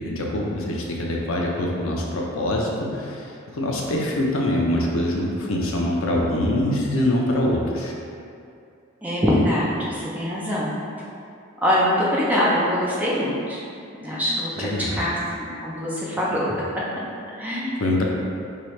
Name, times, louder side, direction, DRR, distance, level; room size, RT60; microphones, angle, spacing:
voice 1, 0.0-7.9 14.6-15.0 17.8-18.0, left 1 dB, 70° left, -2 dB, 0.5 m, -24 dB
voice 2, 9.0-10.7 11.6-13.6 13.9-16.4 17.4-17.9, equal, 5° right, -7 dB, 0.5 m, -23 dB
2.8 x 2.8 x 3.2 m, 2.5 s
head